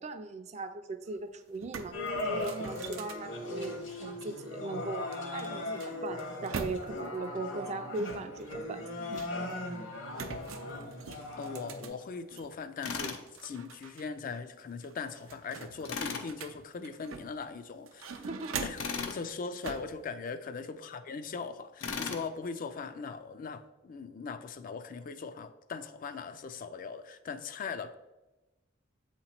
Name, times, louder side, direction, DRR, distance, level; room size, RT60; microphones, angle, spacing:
voice 1, 0.0-2.0 2.3-3.7 4.0-8.9 18.2-18.6, right 2 dB, 35° right, 9 dB, 0.4 m, -39 dB
sound 1, 1.1-1.2 1.5-4.2 5.1-7.2 7.9-9.6 10.1-12.5 12.9-14.0 14.3-14.4 14.8-17.5 17.9-19.0 19.6-20.0, right 5 dB, 90° right, 0.5 m, -43 dB
sound 2, 1.9-11.9, left 2 dB, 65° left, 1.1 m, -38 dB
voice 2, 11.4-18.3 18.6-27.9, left 5 dB, 45° left, 11 dB, 0.3 m, -40 dB
Tools, 12.8-13.2 15.8-16.3 18.8-19.2 21.8-22.3, left 5 dB, 85° left, 0.6 m, -36 dB
7.6 x 2.9 x 4.3 m, 1.1 s
head